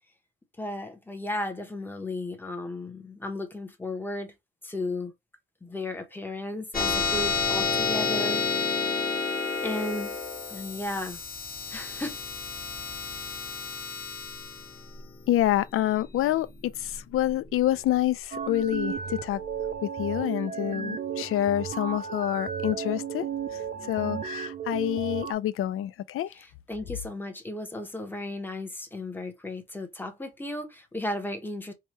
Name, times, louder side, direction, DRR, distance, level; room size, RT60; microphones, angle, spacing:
voice 1, 0.6-4.3 4.6-5.1 5.6-9.3 9.6-11.2 11.7-12.2 26.3-31.7, left 2 dB, 10° left, 0.7 m, -35 dB
sound 1, 6.7-17.6, left 4 dB, 40° left, 1.2 m, -30 dB
voice 2, 15.3-19.4 19.8-23.3 23.5-23.6 23.9-26.3, left 13 dB, 85° left, 0.4 m, -27 dB
sound 2, 18.3-25.3, right 7 dB, 40° right, 0.4 m, -34 dB
4.8 x 2.2 x 2.9 m
wide cardioid pair, 155°, 21 cm